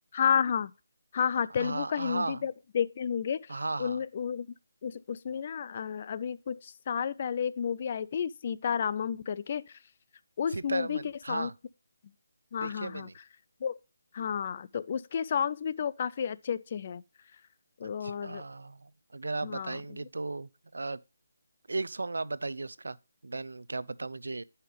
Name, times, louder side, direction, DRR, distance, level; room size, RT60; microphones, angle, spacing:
voice 1, 0.1-0.7 1.1-3.5 3.8-4.5 4.8-9.6 10.4-11.0 11.3-11.5 12.5-13.1 13.6-13.7 14.1-17.0 17.8-18.4 19.4-19.8, left 7 dB, 35° left, 0.4 m, -31 dB
voice 2, 1.6-2.4 3.5-4.0 10.5-11.5 12.6-13.1 17.8-21.0 21.7-23.0 23.2-24.4, right 3 dB, 85° right, 0.5 m, -36 dB
9.3 x 5.6 x 3.4 m
figure-of-eight pair, 165°, 0 cm